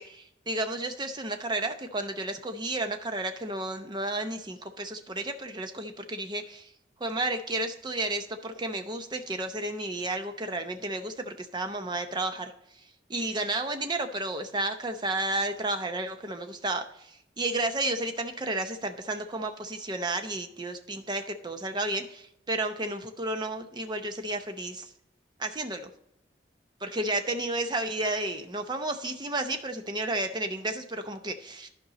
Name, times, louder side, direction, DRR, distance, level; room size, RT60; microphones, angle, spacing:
voice 1, 0.0-6.7 7.0-12.5 13.1-24.9 25.4-25.9 26.8-31.7, right 2 dB, 25° right, 7 dB, 0.7 m, -32 dB
11.5 x 5.2 x 4.1 m, 0.77 s
head